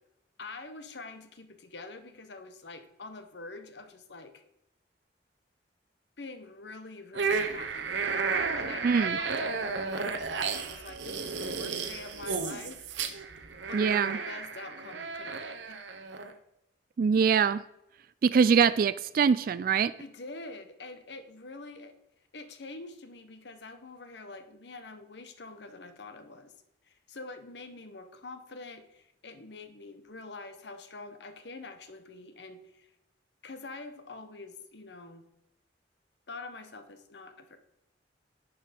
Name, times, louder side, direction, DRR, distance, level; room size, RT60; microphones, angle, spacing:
voice 1, 0.4-4.4 6.2-8.1 8.5-12.9 13.7-15.8 20.0-21.9 22.3-26.5 26.8-32.9 33.4-35.2 36.3-37.6, left 3 dB, 70° left, 9 dB, 1.0 m, -45 dB
sound 1, 7.1-16.3, right 5 dB, 85° right, 0.9 m, -33 dB
voice 2, 8.8-9.2 13.7-14.2 17.0-17.6 18.2-19.9, right 6 dB, 50° right, 16 dB, 0.3 m, -23 dB
10.5 x 4.9 x 5.1 m, 0.84 s
head